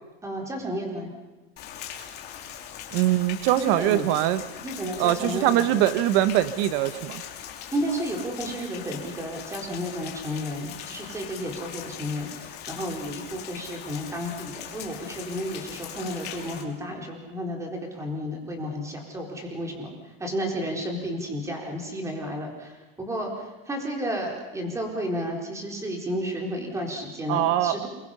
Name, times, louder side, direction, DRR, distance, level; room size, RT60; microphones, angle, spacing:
voice 1, 0.2-1.1 3.5-4.1 4.6-5.8 7.7-27.9, equal, 10° right, 1 dB, 4.1 m, -32 dB
Rain, 1.6-16.6, left 9 dB, 35° left, 3.1 m, -40 dB
voice 2, 2.9-4.4 5.0-7.2 27.3-27.9, right 13 dB, 45° right, 13 dB, 1.3 m, -22 dB
29.0 x 23.0 x 5.7 m, 1.2 s
supercardioid pair, 160°, 30 cm